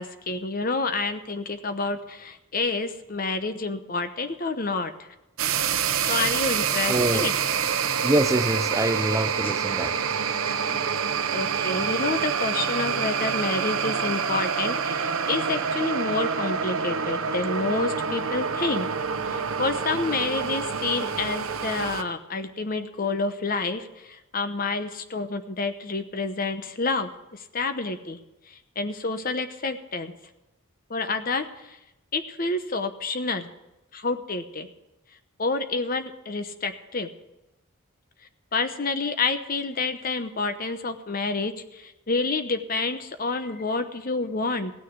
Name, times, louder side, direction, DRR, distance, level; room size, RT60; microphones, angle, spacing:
voice 1, 0.0-5.1 6.0-7.3 9.4-9.5 11.3-18.9 19.2-28.2 28.5-30.1 30.9-31.8 32.1-33.5 33.9-34.7 35.4-37.1 38.5-44.7, left 3 dB, 40° left, 0.9 m, -29 dB
sound 1, 5.4-22.0, right 6 dB, 80° right, 0.8 m, -27 dB
voice 2, 6.9-7.3 8.0-9.9, right 1 dB, 15° right, 0.5 m, -25 dB
16.5 x 6.4 x 9.4 m
head